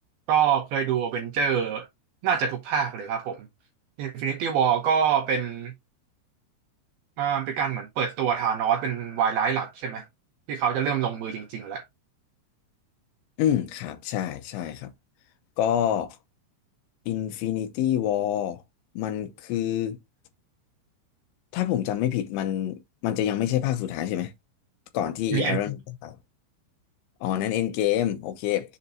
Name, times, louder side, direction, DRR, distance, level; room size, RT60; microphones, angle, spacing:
voice 1, 0.3-1.9 2.2-3.5 4.0-5.7 7.2-10.1 10.5-11.8 25.3-25.6, right 7 dB, 80° right, 2.3 m, -25 dB
voice 2, 13.4-14.9 15.6-16.2 17.1-18.6 19.0-20.0 21.5-24.3 24.9-26.2 27.2-28.8, left 11 dB, 80° left, 3.0 m, -27 dB
7.2 x 5.3 x 2.7 m
omnidirectional pair, 5.6 m